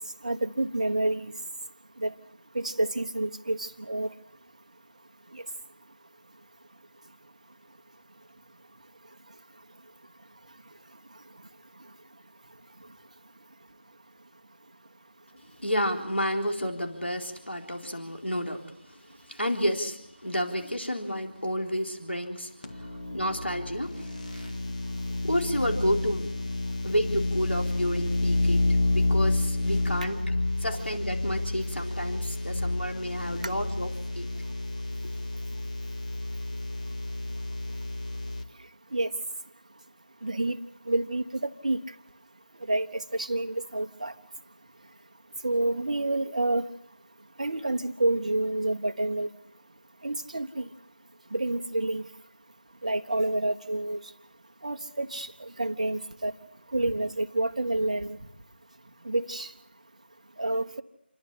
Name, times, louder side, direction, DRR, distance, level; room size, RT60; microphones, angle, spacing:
voice 1, 0.2-1.3 2.0-2.1 2.5-4.1 30.7-30.8 33.4-33.5 38.9-39.1 40.2-40.6 40.9-41.8 42.7-44.1 45.4-46.6 47.4-49.3 50.0-50.7 51.3-52.0 52.8-54.0 54.6-56.3 56.7-58.2 59.1-59.5 60.4-60.8, right 2 dB, 35° right, 7 dB, 1.2 m, -28 dB
voice 2, 15.6-24.6 25.2-26.3 26.8-28.6 28.9-30.3 30.6-34.3, equal, 80° left, 2 dB, 3.9 m, -31 dB
sound 1, 22.6-38.4, left 2 dB, 40° left, 2.1 m, -30 dB
28.5 x 11.5 x 9.9 m, 0.81 s
figure-of-eight pair, 165°, 6 cm